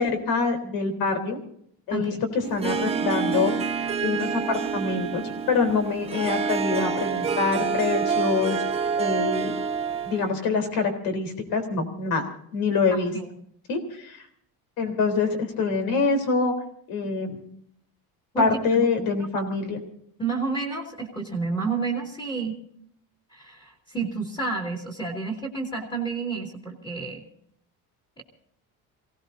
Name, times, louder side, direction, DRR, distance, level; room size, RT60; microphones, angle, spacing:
voice 1, 0.0-1.4 1.9-2.1 2.5-3.5 4.0-8.6 9.0-9.6 10.0-12.3 12.5-13.1 13.7-14.2 14.8-16.5 16.9-17.4 18.4-19.8, left 4 dB, 70° left, 7 dB, 3.9 m, -25 dB
Harp, 2.4-10.3, right 6 dB, 15° right, 1.0 m, -27 dB
voice 2, 12.9-13.3 18.3-18.8 20.2-22.6 23.3-27.2 28.2-28.3, right 4 dB, 15° left, 0 dB, 2.7 m, -30 dB
27.5 x 17.5 x 2.7 m, 0.67 s
cardioid pair, 175°, 37 cm